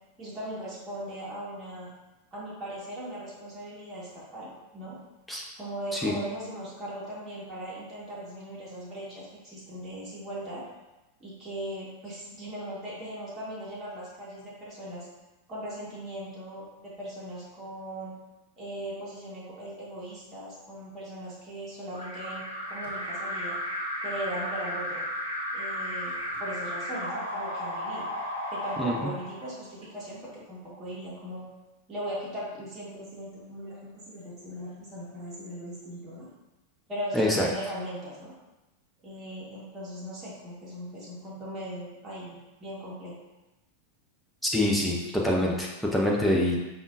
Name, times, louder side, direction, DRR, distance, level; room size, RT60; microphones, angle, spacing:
voice 1, 0.2-1.9 2.3-5.0 5.6-10.7 11.2-15.1 15.5-18.1 18.6-23.6 24.0-25.0 25.5-28.1 28.5-31.5 31.9-36.3 36.9-38.3 39.0-43.2, right 1 dB, 20° right, -8 dB, 1.3 m, -39 dB
Alarm, 21.9-29.8, equal, 85° left, 0.8 m, -34 dB
voice 2, 37.1-37.5 44.4-45.0 45.2-46.6, left 1 dB, ahead, -3 dB, 0.7 m, -25 dB
5.2 x 2.6 x 2.5 m, 1.0 s
figure-of-eight pair, 90°, 0 cm